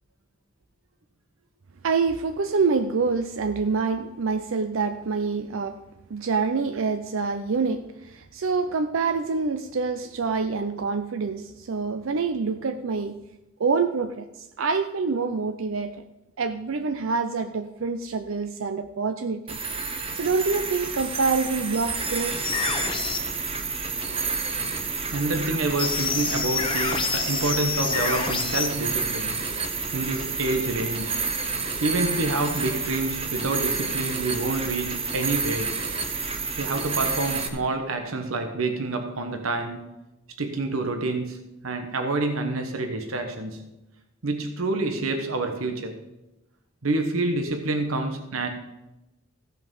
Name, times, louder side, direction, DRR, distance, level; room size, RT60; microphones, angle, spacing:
voice 1, 1.8-5.8 6.1-13.2 13.6-16.0 16.4-19.6 20.1-22.4 25.4-25.6, right 4 dB, 70° right, 8 dB, 0.5 m, -26 dB
sound 1, 19.5-37.5, right 4 dB, 30° right, 1.0 m, -30 dB
sound 2, 22.4-23.2 25.8-28.7, left 5 dB, 25° left, 0.9 m, -27 dB
voice 2, 25.0-29.4 29.9-31.2 31.8-35.8 36.6-39.9 40.4-41.4 41.6-43.7 44.2-46.0 46.8-48.5, right 2 dB, 85° right, 5 dB, 1.2 m, -27 dB
15.0 x 5.8 x 5.5 m, 0.97 s
head